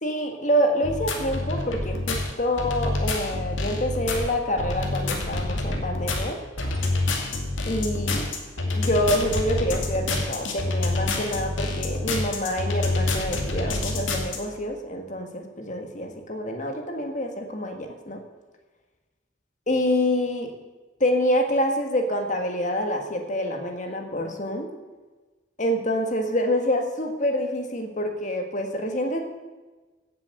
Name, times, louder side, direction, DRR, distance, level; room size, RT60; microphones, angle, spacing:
voice 1, 0.0-6.4 7.6-8.3 8.7-18.2 19.7-20.5 21.0-24.7 25.6-29.2, equal, 40° left, 4 dB, 1.8 m, -26 dB
sound 1, 0.8-14.4, left 2 dB, 75° left, 2.2 m, -27 dB
16.0 x 7.5 x 6.7 m, 1.3 s
head